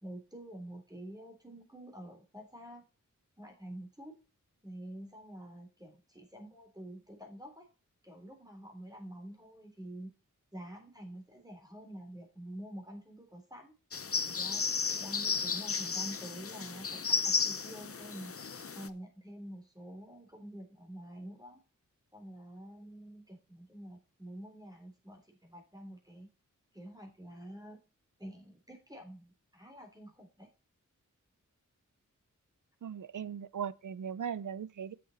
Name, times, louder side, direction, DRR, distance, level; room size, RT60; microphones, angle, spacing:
voice 1, 0.0-2.8 3.4-4.1 4.6-7.7 8.0-10.1 10.5-13.7 14.3-18.3 18.8-21.6 22.1-26.3 26.7-27.8 28.2-30.5, right 1 dB, 10° right, 3.4 m, -48 dB
sound 1, 13.9-18.9, left 5 dB, 45° left, 0.7 m, -33 dB
voice 2, 32.8-34.9, right 8 dB, 70° right, 0.6 m, -38 dB
7.6 x 7.1 x 5.3 m
cardioid pair, 45°, 32 cm